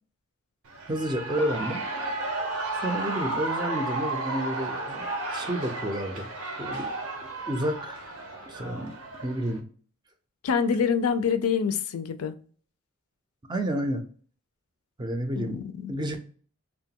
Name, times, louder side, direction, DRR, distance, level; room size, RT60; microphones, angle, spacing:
Shout / Cheering, 0.7-9.6, right 2 dB, 85° right, 0.7 m, -33 dB
voice 1, 0.9-1.8 2.8-6.3 6.6-6.9 7.5-8.0 8.5-8.9 9.2-9.7 13.5-14.1 15.0-15.6 15.9-16.2, right 1 dB, 20° right, 5 dB, 0.4 m, -30 dB
voice 2, 10.4-12.3 15.4-15.9, left 6 dB, 80° left, 10 dB, 0.4 m, -26 dB
2.8 x 2.2 x 2.8 m, 0.42 s
head